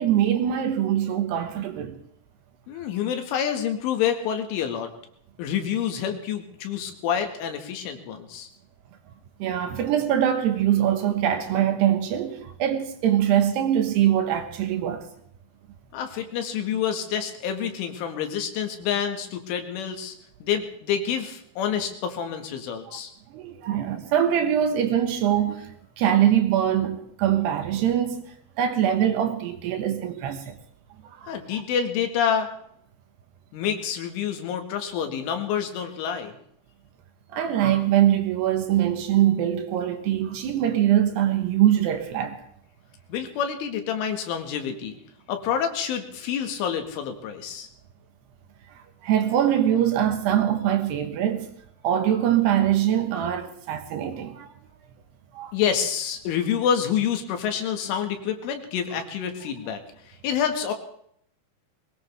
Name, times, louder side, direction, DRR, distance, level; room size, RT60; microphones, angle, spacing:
voice 1, 0.0-2.0 9.4-15.1 22.9-23.0 23.3-30.5 31.2-31.6 37.3-42.4 49.0-51.5 51.8-54.5 55.3-55.5, right 10 dB, 70° right, 3.0 m, -23 dB
voice 2, 2.7-4.9 5.4-8.5 15.9-20.2 20.4-23.1 31.3-32.5 33.5-36.3 43.1-45.0 45.3-47.7 55.5-59.8 60.1-60.7, left 8 dB, 90° left, 4.3 m, -27 dB
21.5 x 19.0 x 3.5 m
omnidirectional pair, 5.5 m